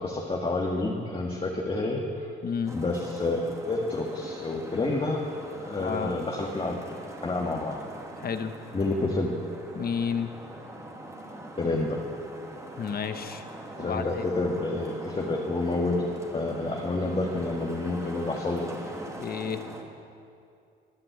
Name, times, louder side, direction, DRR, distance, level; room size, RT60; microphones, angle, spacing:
voice 1, 0.0-2.3 2.7-3.4 3.7-5.2 5.6-7.0 7.2-7.8 8.7-9.3 11.6-12.0 13.8-18.7, left 2 dB, 30° left, -1 dB, 1.8 m, -29 dB
voice 2, 2.4-2.8 5.7-6.2 8.2-8.5 9.7-10.3 12.8-13.4 13.8-14.2 19.1-19.6, left 6 dB, 50° left, 8 dB, 1.2 m, -31 dB
Traffic noise roadway noise, 2.7-19.8, right 1 dB, 15° right, 2.3 m, -43 dB
22.5 x 7.7 x 8.1 m, 2.5 s
cardioid pair, 90°, 20 cm